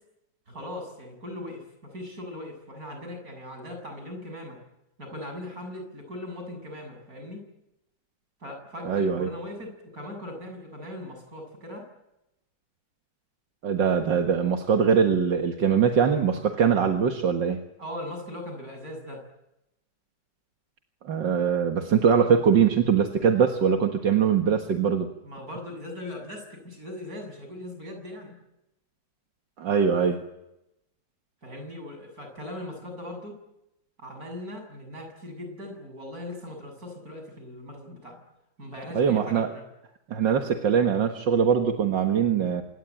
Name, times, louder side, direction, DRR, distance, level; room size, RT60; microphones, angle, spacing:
voice 1, 0.5-4.6 5.0-7.4 8.4-11.9 17.8-19.2 25.2-28.4 31.4-33.4 34.0-38.2 38.6-39.6, left 1 dB, 55° right, 4 dB, 7.5 m, -39 dB
voice 2, 8.8-9.3 13.6-17.6 21.0-25.1 29.6-30.2 38.9-39.5 40.1-42.6, right 7 dB, 80° right, 4 dB, 2.3 m, -22 dB
27.0 x 21.5 x 9.1 m, 0.89 s
omnidirectional pair, 1.9 m